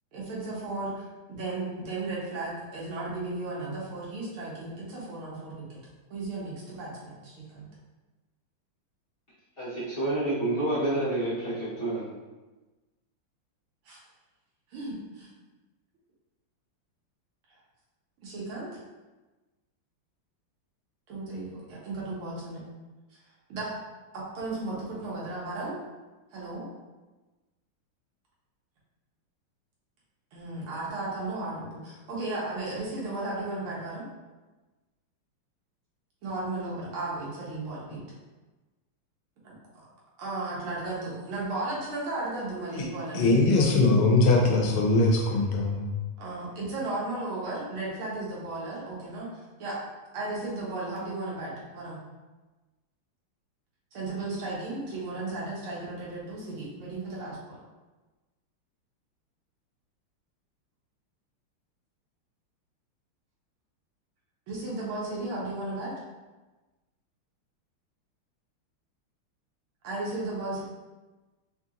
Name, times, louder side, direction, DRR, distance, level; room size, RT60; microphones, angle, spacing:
voice 1, 0.1-5.8 6.1-7.7 13.9-14.0 14.7-15.3 18.2-18.8 21.1-22.6 23.5-23.8 24.1-25.7 26.3-26.7 30.3-34.1 36.2-38.0 40.2-44.1 46.2-49.8 50.1-52.0 53.9-57.6 64.5-65.9 69.8-70.6, right 2 dB, 90° right, -6 dB, 1.9 m, -35 dB
voice 2, 9.6-12.1, right 2 dB, 40° left, -10 dB, 0.9 m, -28 dB
voice 3, 43.1-45.9, left 2 dB, 90° left, -1 dB, 1.6 m, -22 dB
4.3 x 2.8 x 2.5 m, 1.2 s
omnidirectional pair, 2.3 m